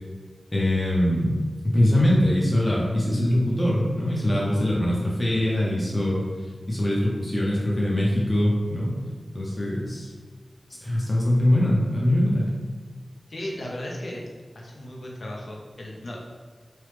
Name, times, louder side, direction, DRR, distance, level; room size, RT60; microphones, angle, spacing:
voice 1, 0.5-1.4 1.6-6.2 6.7-9.0 9.3-10.1 10.8-12.5, left 1 dB, 25° left, -5 dB, 0.6 m, -22 dB
voice 2, 13.3-14.2 14.5-16.2, left 1 dB, 65° left, -2 dB, 0.6 m, -35 dB
3.0 x 2.0 x 3.2 m, 1.5 s
wide cardioid pair, 70°, 0 cm